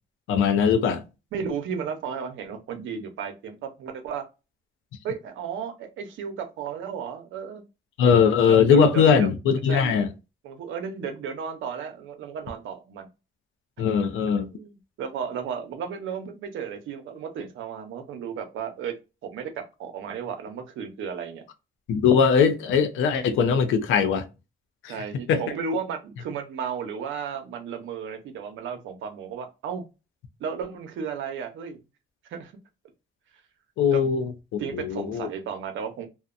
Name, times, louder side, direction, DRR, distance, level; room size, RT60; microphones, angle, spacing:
voice 1, 0.3-1.0 8.0-10.1 13.8-14.5 21.9-24.3 24.8-24.9 25.3-25.4 33.8-35.3, left 6 dB, 85° left, 0.6 m, -20 dB
voice 2, 1.3-4.2 5.0-7.6 8.4-9.3 9.7-10.0 10.4-13.1 14.5-21.4 24.9-29.9 30.4-31.8 32.3-32.5 33.9-34.0 34.6-36.1, right 6 dB, 80° right, 0.7 m, -34 dB
2.7 x 2.1 x 2.4 m
cardioid pair, 90°, 20 cm